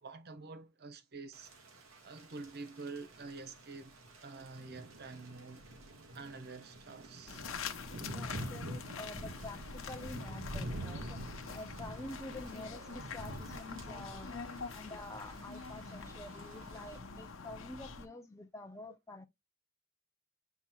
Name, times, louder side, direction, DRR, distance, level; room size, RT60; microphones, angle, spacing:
voice 1, 0.0-1.5 1.8-4.0 4.2-5.7 6.1-7.5 12.7-13.0 14.1-14.2, right 3 dB, 50° right, 0.8 m, -48 dB
Thunder / Rain, 1.3-17.0, right 1 dB, 90° right, 1.4 m, -47 dB
sound 1, 7.3-18.1, left 5 dB, 70° left, 0.8 m, -45 dB
voice 2, 8.0-11.2 11.5-14.3 14.7-19.3, left 2 dB, 15° left, 0.5 m, -48 dB
8.1 x 2.9 x 2.2 m
head